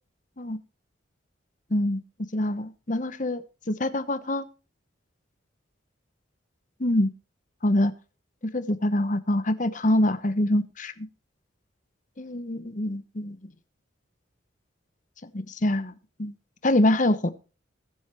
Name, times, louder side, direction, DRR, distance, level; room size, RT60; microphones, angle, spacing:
voice 1, 1.7-2.0 2.3-3.4 3.7-4.4 6.8-7.1 7.6-7.9 8.5-11.1 12.2-13.5 15.3-15.9 16.2-16.3 16.6-17.3, left 1 dB, 40° left, 13 dB, 1.0 m, -25 dB
21.0 x 8.0 x 3.1 m, 0.34 s
head